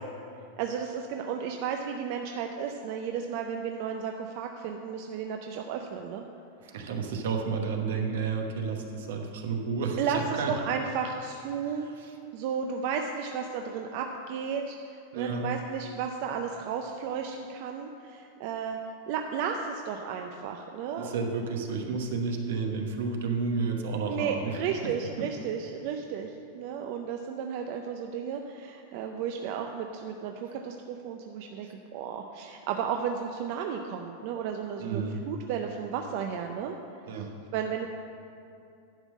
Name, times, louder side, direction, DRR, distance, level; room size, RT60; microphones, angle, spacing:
voice 1, 0.6-6.2 10.0-11.9 12.3-18.8 19.1-21.1 24.1-36.8 37.5-37.9, right 7 dB, 50° right, 3 dB, 0.5 m, -33 dB
voice 2, 6.6-10.5 11.6-12.1 15.1-15.5 21.0-24.6 24.8-25.3 34.8-35.2 37.1-37.3, right 4 dB, 80° right, 3 dB, 1.1 m, -31 dB
10.5 x 3.7 x 7.3 m, 2.5 s
supercardioid pair, 150°, 0 cm